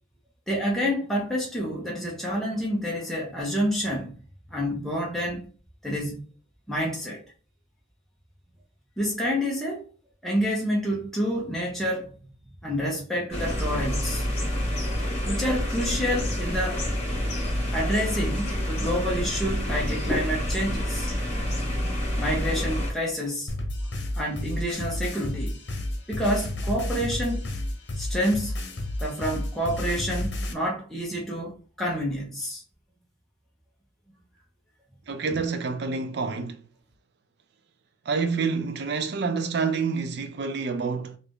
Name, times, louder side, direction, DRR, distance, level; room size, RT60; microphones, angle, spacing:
voice 1, 0.5-4.2 4.5-5.4 5.8-6.2 6.7-7.2 9.0-9.8 10.2-12.1 12.6-14.3 15.2-16.8 17.7-21.1 22.2-23.5 24.1-25.5 26.1-27.5 28.0-28.6 29.0-32.6 35.3-35.4, equal, ahead, 0.7 m, -28 dB
sound 1, 13.3-22.9, left 1 dB, 35° left, 1.3 m, -28 dB
sound 2, 23.5-30.5, left 1 dB, 65° left, 0.9 m, -31 dB
voice 2, 35.1-36.6 38.1-41.2, right 5 dB, 65° right, 0.4 m, -28 dB
3.3 x 2.5 x 3.5 m
head